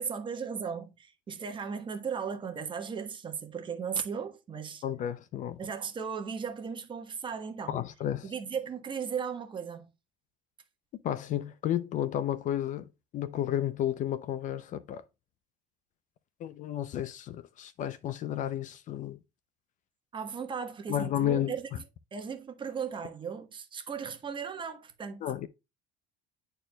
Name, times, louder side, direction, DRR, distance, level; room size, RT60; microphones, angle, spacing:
voice 1, 0.0-4.8 5.6-7.8 8.2-9.9 20.1-21.8 22.1-25.3, right 6 dB, 25° right, 1.2 m, -36 dB
voice 2, 4.8-5.6 7.7-8.3 11.0-12.9 13.1-15.0 16.4-19.2 20.9-21.5 25.2-25.5, left 11 dB, 40° left, 0.5 m, -32 dB
11.0 x 4.5 x 2.2 m
cardioid pair, 140°, 19 cm